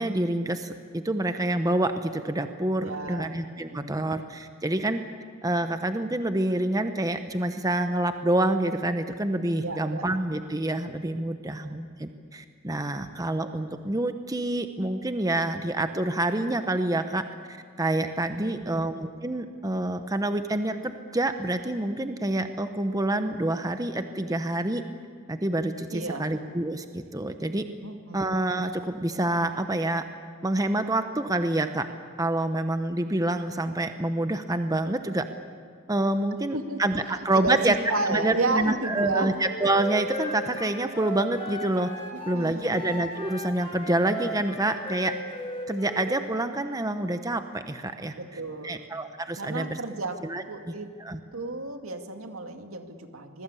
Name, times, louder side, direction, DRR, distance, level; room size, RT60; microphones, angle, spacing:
voice 1, 0.0-5.1 5.4-17.2 17.5-24.8 25.3-27.6 28.1-30.0 30.4-31.9 32.2-35.2 35.9-37.8 38.1-41.9 42.3-45.1 45.7-48.1 48.6-49.8 50.2-50.7 51.0-51.2, right 1 dB, 15° right, 8 dB, 0.9 m, -27 dB
voice 2, 2.8-3.3 3.7-4.1 9.6-10.0 11.4-11.8 18.3-18.9 25.9-26.3 27.8-28.2 36.5-36.8 37.1-39.3 42.1-42.8 48.2-48.9 49.4-50.2 50.4-50.9 51.3-53.4, right 2 dB, 80° right, 5 dB, 2.3 m, -32 dB
Wind instrument woodwind instrument, 39.2-42.4 42.7-46.1, left 2 dB, 25° left, 4.6 m, -37 dB
26.0 x 21.0 x 8.4 m, 2.2 s
head